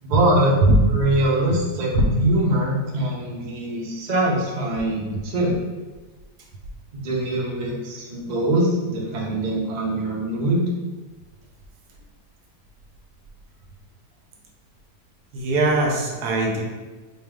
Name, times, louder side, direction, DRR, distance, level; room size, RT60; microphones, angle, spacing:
voice 1, 0.0-0.6 0.9-5.6 6.9-10.7, right 1 dB, 50° right, -4 dB, 0.5 m, -23 dB
voice 2, 15.3-16.6, right 2 dB, 75° right, -1 dB, 1.2 m, -20 dB
4.1 x 2.3 x 3.5 m, 1.2 s
omnidirectional pair, 1.7 m